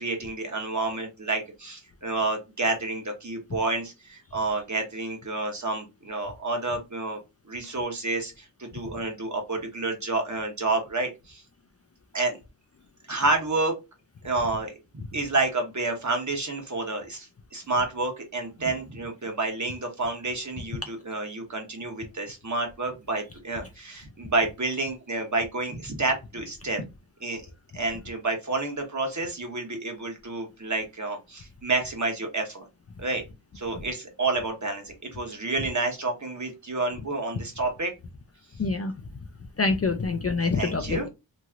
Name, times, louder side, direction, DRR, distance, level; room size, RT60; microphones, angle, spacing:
voice 1, 0.0-7.2 7.5-11.4 12.1-12.4 13.1-13.7 14.2-14.7 15.1-26.8 27.2-27.4 27.7-32.6 33.0-33.2 33.5-37.9 40.4-41.1, right 3 dB, 40° right, 3 dB, 1.1 m, -29 dB
voice 2, 38.6-38.9 39.6-41.1, left 3 dB, 35° left, 5 dB, 0.4 m, -25 dB
3.0 x 2.7 x 2.3 m, 0.24 s
wide cardioid pair, 65°, 46 cm